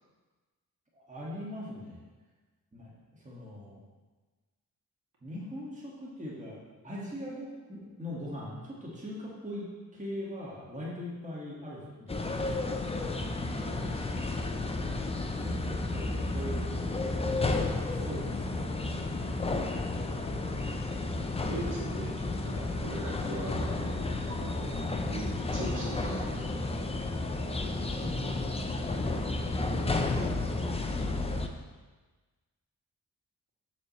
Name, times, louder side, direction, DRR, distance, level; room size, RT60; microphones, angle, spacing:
voice 1, 0.9-2.0 2.7-3.8 5.2-6.6 6.8-12.8 14.7-17.0 17.9-19.0 25.6-26.0 27.9-30.7, equal, 20° right, -5 dB, 1.7 m, -42 dB
sound 1, 12.1-31.5, left 2 dB, 15° left, 0.5 m, -32 dB
voice 2, 13.6-14.3 21.3-24.5 25.1-26.6, right 1 dB, 60° right, -6 dB, 2.4 m, -41 dB
7.3 x 6.9 x 3.1 m, 1.3 s
cardioid pair, 75°, 35 cm